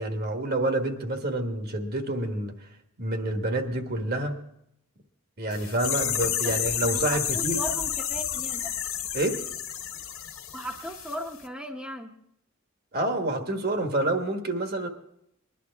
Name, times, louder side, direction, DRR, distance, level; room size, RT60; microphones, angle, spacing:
voice 1, 0.0-2.5 3.0-4.4 5.4-7.6 9.1-9.4 12.9-14.9, right 1 dB, 45° right, 1.4 m, -28 dB
sound 1, 5.5-11.2 11.4-11.5, left 9 dB, 65° left, 1.6 m, -30 dB
voice 2, 6.9-8.7 10.5-12.1, equal, 5° right, 1.0 m, -37 dB
20.5 x 11.0 x 3.5 m
head